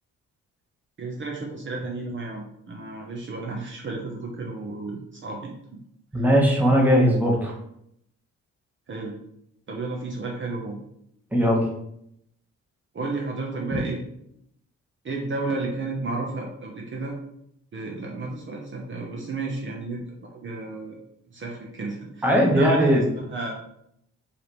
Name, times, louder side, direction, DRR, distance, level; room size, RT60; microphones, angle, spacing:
voice 1, 1.0-5.5 6.2-6.3 8.9-9.2 9.7-10.8 12.9-14.0 15.0-17.2 17.7-21.0 21.3-23.5, right 3 dB, 40° right, -1 dB, 0.9 m, -32 dB
voice 2, 6.1-7.5 11.3-11.6 22.2-23.1, equal, 5° right, -2 dB, 1.2 m, -19 dB
4.7 x 3.4 x 3.1 m, 0.75 s
cardioid pair, 90°, 30 cm